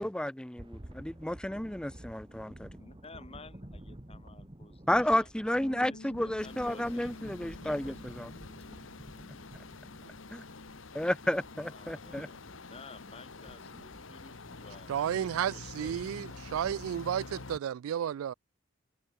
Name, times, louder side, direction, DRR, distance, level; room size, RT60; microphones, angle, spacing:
voice 1, 0.0-2.7 4.9-8.3 10.3-10.4 10.9-12.3, left 1 dB, 5° left, 0.5 m, -32 dB
sound 1, 0.6-16.3, right 1 dB, 25° right, 1.5 m, -51 dB
voice 2, 2.7-7.9 8.7-8.8 11.7-16.6, left 3 dB, 30° left, 4.4 m, -54 dB
sound 2, 5.6-15.3, left 2 dB, 50° left, 0.9 m, -53 dB
sound 3, 6.4-17.6, left 3 dB, 70° left, 1.4 m, -48 dB
voice 3, 14.9-18.3, right 9 dB, 90° right, 0.3 m, -32 dB
head